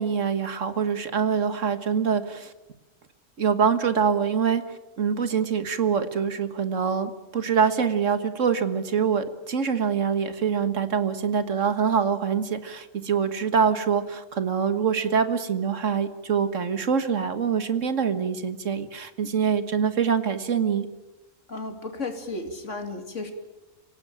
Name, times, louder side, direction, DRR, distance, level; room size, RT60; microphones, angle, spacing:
voice 1, 0.0-2.5 3.4-20.9, right 6 dB, 65° right, 10 dB, 1.8 m, -25 dB
voice 2, 21.5-23.3, left 3 dB, 65° left, 5 dB, 3.1 m, -34 dB
26.0 x 17.5 x 9.1 m, 1.1 s
omnidirectional pair, 1.4 m